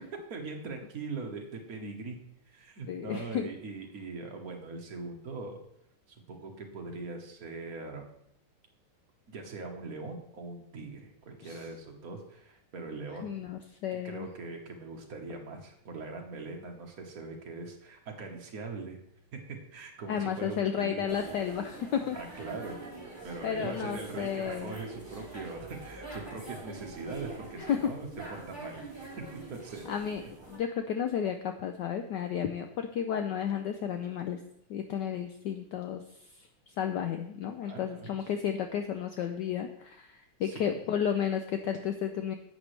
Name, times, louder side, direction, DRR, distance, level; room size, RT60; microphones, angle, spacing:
voice 1, 0.3-2.2 2.5-5.6 6.1-8.1 9.3-13.4 13.9-19.0 19.3-21.3 22.1-22.8 23.2-28.1 28.5-28.8 29.5-29.9 37.6-38.3 40.4-40.7, right 3 dB, 50° right, 2 dB, 1.5 m, -41 dB
voice 2, 2.9-3.5 11.4-11.6 13.2-14.3 20.1-22.2 23.4-24.7 27.7-27.9 29.9-34.4 34.7-36.0 36.4-42.3, left 8 dB, 75° left, 7 dB, 1.0 m, -32 dB
sound 1, 21.1-30.6, right 3 dB, 10° right, 3.1 m, -44 dB
10.5 x 8.0 x 3.3 m, 0.73 s
omnidirectional pair, 2.3 m